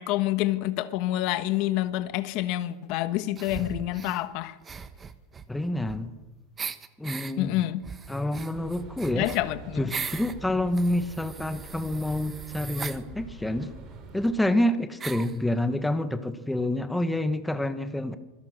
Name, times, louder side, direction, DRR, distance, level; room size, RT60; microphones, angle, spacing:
voice 1, 0.0-4.6 7.4-7.8 9.2-9.9, left 15 dB, 50° left, 1.5 m, -27 dB
sound 1, 3.4-4.2 4.6-6.2 6.6-7.3 7.8-10.3 10.7-13.0 13.9-14.0 14.2-14.3 15.0-15.4, right 6 dB, 15° right, 1.1 m, -39 dB
voice 2, 5.5-6.1 7.0-7.6 8.1-9.3 9.8-13.7 14.1-18.2, left 1 dB, 5° left, 1.4 m, -28 dB
sound 2, 8.5-14.3, right 4 dB, 35° right, 5.0 m, -45 dB
26.0 x 22.5 x 6.6 m
supercardioid pair, 155°, 0 cm